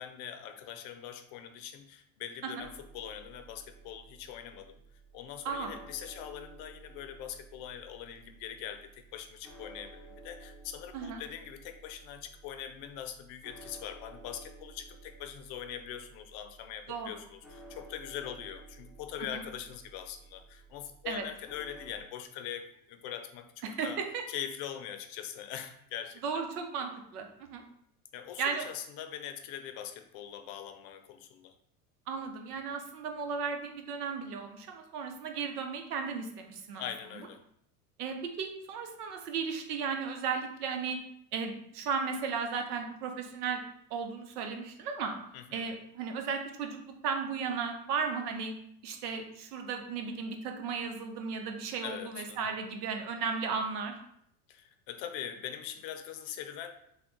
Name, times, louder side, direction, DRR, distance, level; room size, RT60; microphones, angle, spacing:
voice 1, 0.0-4.8 5.1-24.0 24.3-26.4 28.1-31.5 36.7-37.4 45.3-45.7 51.8-52.6 54.5-56.7, left 10 dB, 55° left, 8 dB, 0.6 m, -42 dB
sound 1, 2.6-22.0, right 3 dB, ahead, 0.6 m, -53 dB
voice 2, 23.6-24.2 26.2-27.6 28.4-28.7 32.1-36.8 38.0-41.0 41.3-43.6 43.9-45.2 45.5-46.8 47.0-48.5 48.8-53.9, right 5 dB, 80° right, 4 dB, 0.8 m, -35 dB
3.5 x 2.3 x 3.7 m, 0.71 s
hypercardioid pair, 95°, 45 cm